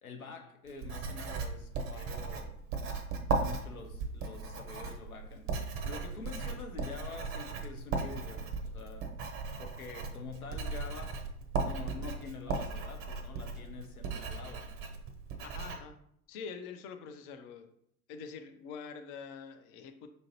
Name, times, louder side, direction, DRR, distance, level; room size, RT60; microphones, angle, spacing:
voice 1, 0.0-2.7 3.3-5.5 5.8-9.2 9.6-11.2 11.6-14.8, left 5 dB, 85° left, 0.6 m, -46 dB
Writing, 0.7-15.8, right 4 dB, 30° right, 0.6 m, -37 dB
voice 2, 15.4-16.0 16.3-17.7 18.1-20.1, left 6 dB, 35° left, 0.4 m, -45 dB
5.1 x 2.5 x 2.8 m
figure-of-eight pair, 70°, 42 cm